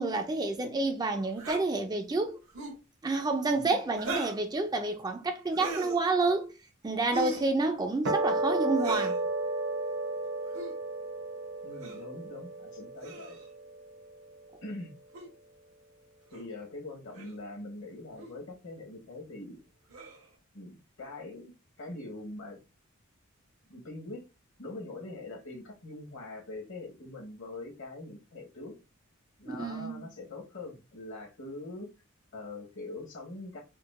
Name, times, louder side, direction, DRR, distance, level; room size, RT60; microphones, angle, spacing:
voice 1, 0.0-2.4 3.0-6.5 6.8-9.2 29.5-30.0, right 3 dB, 20° right, 0.4 m, -29 dB
sound 1, 1.4-1.6 2.5-2.8 4.0-4.4 5.5-6.0 7.1-7.5 8.8-9.2 10.5-10.7 11.8-12.0 13.0-13.5 15.1-15.3 16.3-16.4 17.1-17.4 18.2-18.3 19.9-20.3, right 3 dB, 80° right, 1.0 m, -38 dB
sound 2, 8.1-14.6, right 2 dB, 60° right, 0.8 m, -33 dB
voice 2, 11.6-13.4 14.6-14.9 16.3-19.6 20.5-21.5 21.8-22.6 23.7-24.2 24.6-28.7 29.4-31.9 32.3-33.6, left 2 dB, 65° left, 1.1 m, -43 dB
4.4 x 2.2 x 2.4 m
head